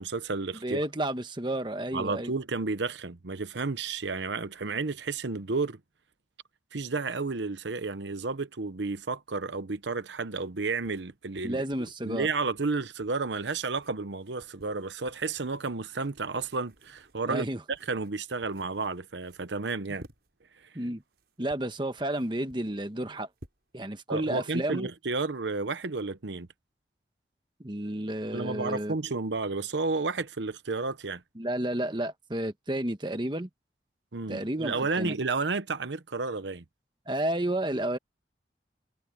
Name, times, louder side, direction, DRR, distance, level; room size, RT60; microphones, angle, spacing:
voice 1, 0.0-0.8 1.9-5.8 6.7-11.6 12.0-20.0 24.1-26.5 28.3-31.2 34.1-36.6, right 3 dB, 85° right, 1.0 m, -32 dB
voice 2, 0.6-2.3 11.4-12.3 17.3-17.6 20.7-21.0 21.4-23.3 23.7-24.9 27.6-28.9 31.4-33.5 34.3-35.1 37.1-38.0, right 1 dB, 25° right, 1.3 m, -31 dB
sound 1, 9.8-24.0, equal, 65° right, 7.5 m, -57 dB
head